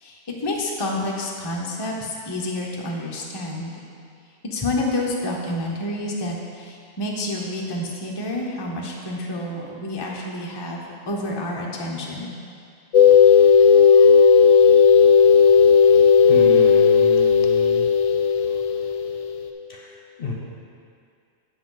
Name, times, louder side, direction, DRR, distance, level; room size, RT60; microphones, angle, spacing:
voice 1, 0.0-3.8 4.5-12.3, left 1 dB, 25° left, -2 dB, 0.7 m, -29 dB
sound 1, 12.9-19.5, left 6 dB, 75° left, 1.0 m, -14 dB
voice 2, 16.3-17.9 19.7-20.3, left 2 dB, 50° left, -1 dB, 0.9 m, -32 dB
7.7 x 7.6 x 3.9 m, 2.3 s
omnidirectional pair, 1.4 m